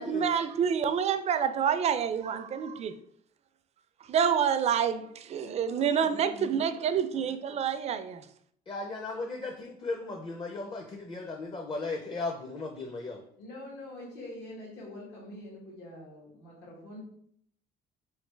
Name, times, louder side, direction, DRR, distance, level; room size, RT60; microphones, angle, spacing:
voice 1, 0.0-3.0 4.1-8.3, right 7 dB, 40° right, 10 dB, 0.4 m, -28 dB
voice 2, 5.4-6.6 7.5-7.6 13.4-17.0, left 1 dB, 80° left, -4 dB, 1.6 m, -45 dB
voice 3, 8.7-13.2, left 3 dB, 30° left, 2 dB, 0.5 m, -36 dB
3.5 x 3.2 x 3.2 m, 0.66 s
cardioid pair, 110°, 17 cm